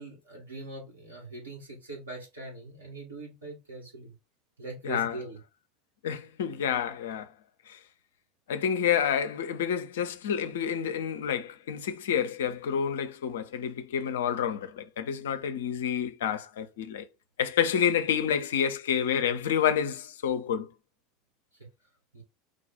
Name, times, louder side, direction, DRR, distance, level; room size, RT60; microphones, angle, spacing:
voice 1, 0.0-4.1 4.6-5.4 22.1-22.2, right 2 dB, 75° right, 2.5 m, -41 dB
voice 2, 6.0-7.3 7.7-7.8 8.5-17.0 17.4-20.7, left 8 dB, 65° left, 0.5 m, -29 dB
4.9 x 2.3 x 4.0 m
figure-of-eight pair, 75°, 0 cm